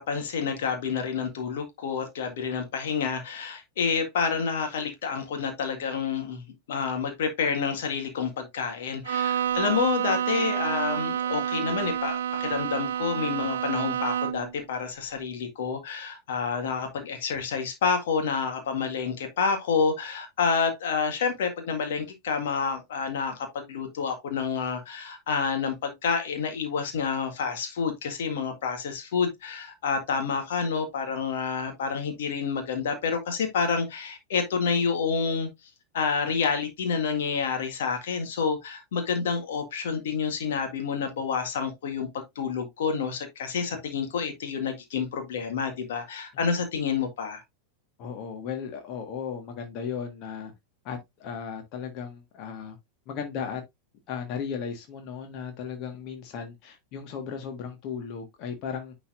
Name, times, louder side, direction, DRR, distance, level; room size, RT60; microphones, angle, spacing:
voice 1, 0.0-6.4 6.7-35.5 35.9-47.4, left 5 dB, 55° left, 1.8 m, -29 dB
Bowed string instrument, 9.0-14.6, right 9 dB, 65° right, 0.4 m, -29 dB
voice 2, 48.0-50.5 50.8-52.8 53.1-53.6 54.1-58.9, left 7 dB, 40° left, 1.6 m, -36 dB
10.0 x 4.0 x 2.6 m
figure-of-eight pair, 90°, 0 cm